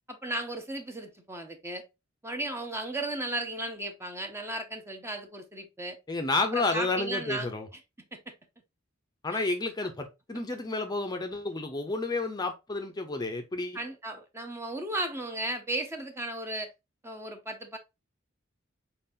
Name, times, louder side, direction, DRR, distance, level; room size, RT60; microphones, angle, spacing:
voice 1, 0.1-1.8 2.2-6.0 6.4-7.5 8.1-8.2 9.3-9.5 9.8-9.9 13.7-16.7 17.0-17.8, right 1 dB, 15° right, 0.7 m, -35 dB
voice 2, 6.1-7.7 9.2-13.8, left 3 dB, 20° left, 0.6 m, -31 dB
4.6 x 3.8 x 2.7 m
head